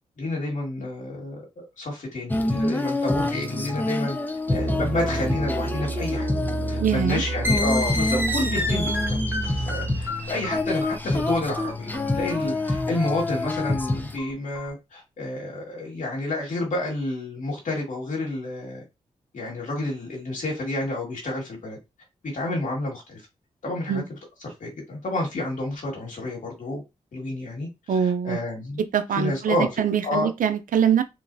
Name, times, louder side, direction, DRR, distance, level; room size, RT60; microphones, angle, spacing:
voice 1, 0.2-1.4 1.8-4.2 4.5-6.3 6.7-18.8 19.3-21.8 22.3-23.2 23.6-24.0 24.6-26.8 27.1-28.8 29.2-29.7 30.0-30.3, left 2 dB, 65° left, 2.0 m, -29 dB
Female singing, 2.3-14.2, left 2 dB, 15° left, 0.6 m, -27 dB
sound 1, 4.5-10.0, right 3 dB, 50° right, 1.7 m, -30 dB
voice 2, 6.8-7.2 23.9-24.1 27.9-28.4 28.8-31.0, right 8 dB, 75° right, 0.6 m, -23 dB
sound 2, 7.4-14.7, left 2 dB, 15° right, 1.4 m, -31 dB
3.8 x 3.1 x 2.7 m
cardioid pair, 65°, 14 cm